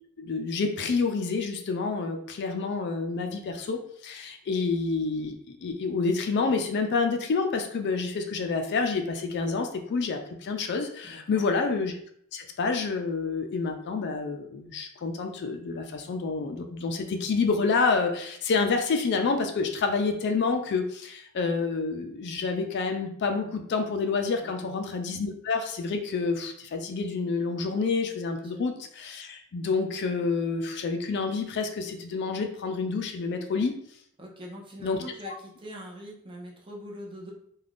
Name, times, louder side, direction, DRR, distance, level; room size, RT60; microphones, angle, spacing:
voice 1, 0.2-11.9 12.3-33.7 34.8-35.0 35.2-35.3, left 4 dB, 50° left, 5 dB, 0.4 m, -28 dB
voice 2, 11.0-11.5 24.4-24.8 28.5-28.6 34.2-37.3, equal, 25° right, -1 dB, 0.6 m, -43 dB
2.5 x 2.3 x 3.3 m, 0.66 s
head